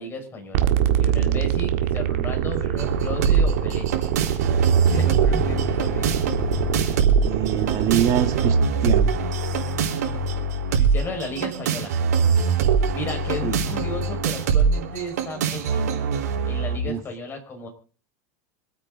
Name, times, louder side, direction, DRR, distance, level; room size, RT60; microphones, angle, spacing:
voice 1, 0.0-3.9 4.9-6.1 10.7-11.9 12.9-15.8 16.4-17.7, left 1 dB, 25° left, 3 dB, 5.3 m, -34 dB
sound 1, 0.5-8.6, right 10 dB, 70° right, 1.8 m, -24 dB
sound 2, 2.8-16.8, right 5 dB, 90° right, 4.3 m, -23 dB
voice 2, 7.2-8.6 8.8-9.1 13.4-13.6 16.8-17.0, right 9 dB, 40° right, 6 dB, 1.8 m, -24 dB
26.0 x 9.0 x 3.9 m, 0.39 s
supercardioid pair, 130°, 9 cm